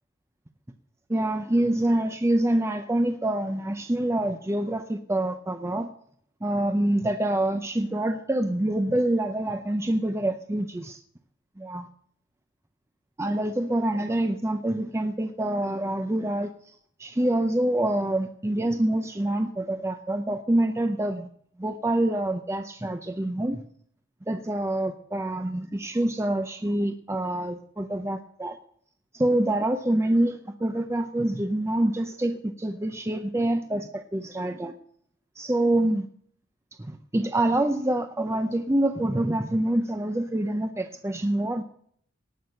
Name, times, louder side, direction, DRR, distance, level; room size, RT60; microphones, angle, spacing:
voice 1, 1.1-5.9 6.4-11.0 11.6-11.9 13.2-16.7 17.0-21.3 21.6-23.6 24.3-28.6 29.1-34.5 35.4-36.1 36.8-41.6, right 1 dB, 15° right, 7 dB, 0.6 m, -26 dB
18.0 x 6.2 x 6.5 m, 0.64 s
head